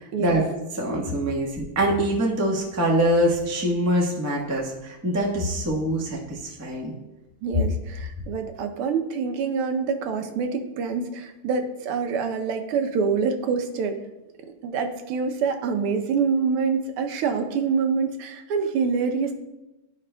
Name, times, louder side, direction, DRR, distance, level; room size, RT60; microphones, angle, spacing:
voice 1, 0.8-6.9, right 1 dB, 15° right, -2 dB, 0.5 m, -24 dB
voice 2, 7.4-14.0 14.4-19.3, right 5 dB, 85° right, 6 dB, 1.6 m, -26 dB
12.0 x 5.1 x 2.2 m, 1.0 s
omnidirectional pair, 2.4 m